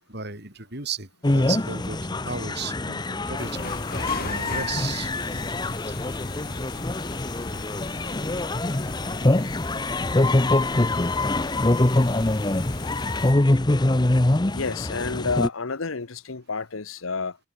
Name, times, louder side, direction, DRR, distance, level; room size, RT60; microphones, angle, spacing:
voice 1, 0.1-1.1 1.3-3.7 4.2-5.1 5.8-6.0, right 5 dB, 50° right, 5.9 m, -34 dB
sound 1, 1.2-15.5, left 2 dB, 20° left, 0.7 m, -24 dB
sound 2, 3.4-13.3, left 3 dB, 45° left, 7.1 m, -39 dB
voice 2, 14.4-17.4, left 4 dB, 80° left, 1.1 m, -30 dB
head